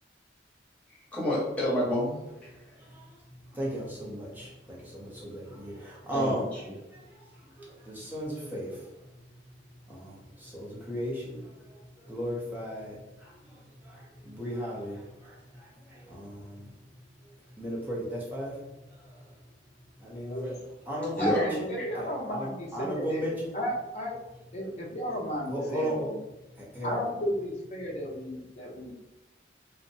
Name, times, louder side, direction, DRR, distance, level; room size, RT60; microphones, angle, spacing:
voice 1, 1.1-2.2 6.0-6.7 21.1-21.5, left 1 dB, 5° left, -8 dB, 0.9 m, -28 dB
voice 2, 3.5-6.4 7.6-8.7 9.9-11.4 12.1-12.9 14.2-15.0 16.1-16.6 17.6-18.5 20.0-20.5 20.9-21.7 22.0-23.5 25.5-26.1 26.7-27.0, equal, 10° right, -5 dB, 0.6 m, -35 dB
voice 3, 21.2-24.1 24.5-26.2 26.8-28.9, equal, 40° left, -3 dB, 0.6 m, -34 dB
2.6 x 2.0 x 2.6 m, 0.95 s
head